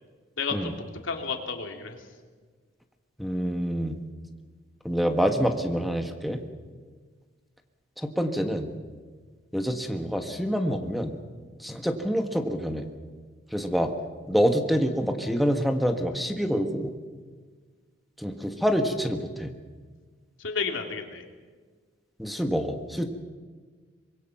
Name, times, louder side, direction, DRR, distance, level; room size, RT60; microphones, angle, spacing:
voice 1, 0.4-0.7 1.0-2.0 20.4-21.2, left 5 dB, 85° left, 4 dB, 2.6 m, -31 dB
voice 2, 3.2-3.9 4.8-6.4 8.0-8.7 9.5-11.1 11.6-12.9 13.5-13.9 14.3-16.9 18.2-19.5 22.2-23.1, equal, ahead, 6 dB, 1.3 m, -26 dB
24.5 x 22.0 x 5.9 m, 1.5 s
head